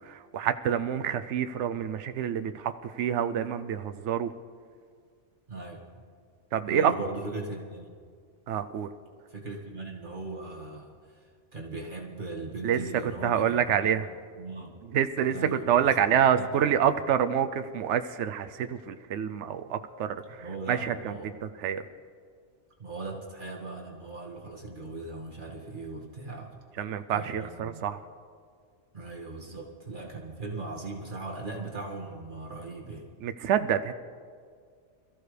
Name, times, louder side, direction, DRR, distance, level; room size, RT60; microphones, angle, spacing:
voice 1, 0.0-4.3 6.5-6.9 8.5-8.9 12.6-12.8 13.2-14.1 14.9-21.2 21.4-21.8 26.8-28.0 33.2-33.9, right 9 dB, 75° right, 10 dB, 0.9 m, -27 dB
voice 2, 5.5-5.8 6.7-7.9 9.3-14.1 14.4-14.8 15.3-16.0 16.4-16.8 20.4-21.3 22.8-26.5 27.1-27.8 28.9-33.1, right 3 dB, 45° right, -2 dB, 1.9 m, -39 dB
27.0 x 14.5 x 3.3 m, 2.1 s
omnidirectional pair, 1.2 m